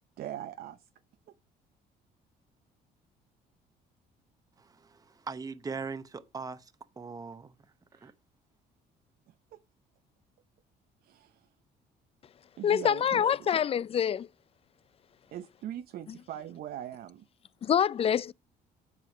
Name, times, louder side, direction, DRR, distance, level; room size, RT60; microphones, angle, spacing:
voice 1, 0.2-0.9 7.9-8.1 9.5-9.6 11.0-11.5 12.6-13.5 15.3-17.3, right 11 dB, 65° right, 0.8 m, -41 dB
voice 2, 4.6-7.5 8.0-8.1, right 4 dB, 20° right, 0.9 m, -40 dB
voice 3, 12.6-14.3 17.6-18.3, left 8 dB, 35° left, 0.4 m, -26 dB
7.8 x 7.7 x 4.9 m
cardioid pair, 110°, 17 cm